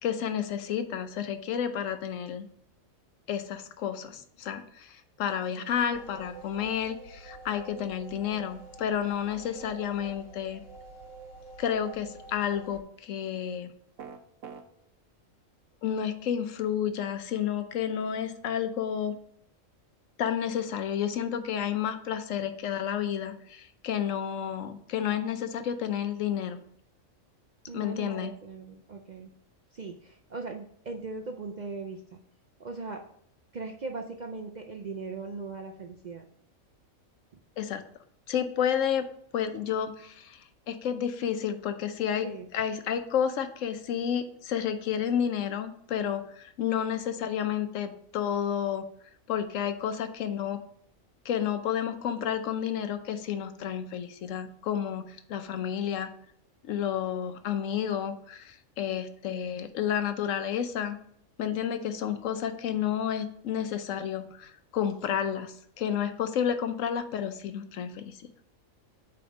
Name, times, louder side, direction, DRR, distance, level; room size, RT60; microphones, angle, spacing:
voice 1, 0.0-2.5 3.3-10.6 11.6-13.7 15.8-19.2 20.2-26.6 27.7-28.3 37.6-37.8 38.3-39.1 39.3-40.4 40.7-48.8 49.3-50.6 51.2-56.1 56.6-61.0 61.4-68.3, left 9 dB, 75° left, 9 dB, 1.0 m, -31 dB
sound 1, 5.9-12.8, right 3 dB, 50° left, 1.3 m, -48 dB
sound 2, 14.0-14.6, right 6 dB, 75° right, 1.1 m, -42 dB
voice 2, 27.7-29.3 29.7-32.2 32.6-33.0 33.5-36.2 42.2-42.5 58.9-59.0 59.3-59.4, right 3 dB, 50° right, 2 dB, 0.5 m, -39 dB
8.4 x 3.4 x 4.0 m, 0.66 s
omnidirectional pair, 1.4 m